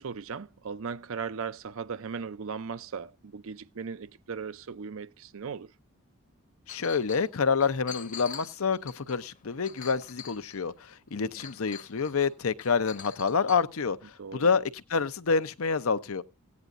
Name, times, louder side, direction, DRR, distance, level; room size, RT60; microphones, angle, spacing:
voice 1, 0.0-5.7 11.4-11.5 14.2-14.5, right 5 dB, 65° right, 0.5 m, -37 dB
voice 2, 6.7-16.2, left 5 dB, 70° left, 0.7 m, -28 dB
Chink clink, 6.7-7.3 7.6-10.7 11.4-12.3 12.6-13.6, left 8 dB, 35° left, 0.9 m, -44 dB
17.5 x 9.5 x 2.5 m
head